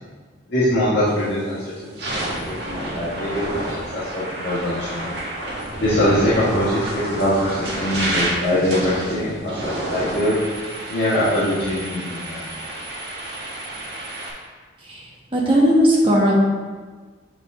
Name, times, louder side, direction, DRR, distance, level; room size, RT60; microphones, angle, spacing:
voice 1, 0.5-1.6 2.0-3.6 3.9-5.0 5.8-10.4 10.9-12.5, left 1 dB, 65° left, -10 dB, 1.5 m, -22 dB
sound 1, 1.1-1.4 1.8-14.3, right 1 dB, 60° right, 1.6 m, -29 dB
voice 2, 14.8-16.3, equal, 30° right, -4 dB, 1.3 m, -18 dB
7.1 x 4.6 x 3.6 m, 1.4 s
head